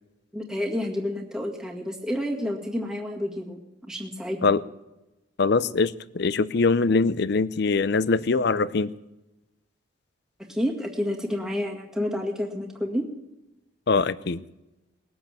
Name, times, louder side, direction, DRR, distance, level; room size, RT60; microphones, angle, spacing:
voice 1, 0.3-4.5 10.5-13.0, left 1 dB, 5° right, -1 dB, 1.9 m, -29 dB
voice 2, 5.4-8.9 13.9-14.4, left 4 dB, 55° left, 17 dB, 0.5 m, -22 dB
20.0 x 7.9 x 9.0 m, 0.99 s
head